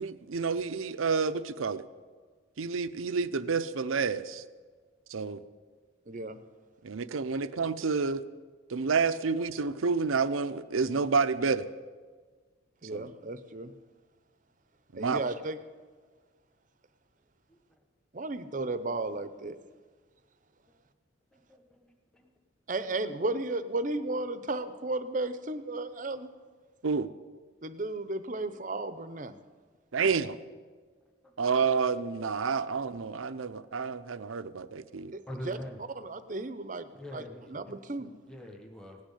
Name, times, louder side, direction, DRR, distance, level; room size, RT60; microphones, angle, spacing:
voice 1, 0.0-1.8 2.6-4.4 5.1-5.4 6.8-8.2 8.7-11.6 12.8-13.1 14.9-15.2 26.8-27.1 29.9-30.4 31.4-35.1, right 5 dB, 85° right, 12 dB, 0.6 m, -29 dB
voice 2, 6.1-6.4 12.8-13.7 14.9-15.6 18.1-19.6 22.7-26.3 27.6-29.4 35.1-35.6 36.0-38.1, right 2 dB, 40° right, 12 dB, 0.7 m, -34 dB
voice 3, 21.3-22.3 31.2-31.3 35.3-35.8 36.9-37.6 38.0-39.0, equal, 5° left, 2 dB, 1.3 m, -44 dB
17.5 x 6.4 x 10.0 m, 1.5 s
head